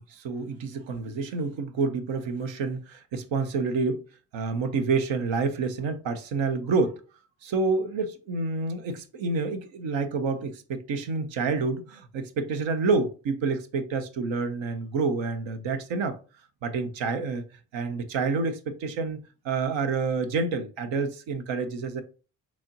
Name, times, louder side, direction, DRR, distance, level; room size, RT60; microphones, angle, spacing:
voice 1, 0.0-4.1 4.3-7.0 7.4-16.2 16.6-17.4 17.7-22.0, right 4 dB, 70° right, 0.7 m, -28 dB
4.0 x 2.9 x 2.8 m
hypercardioid pair, 40°, 47 cm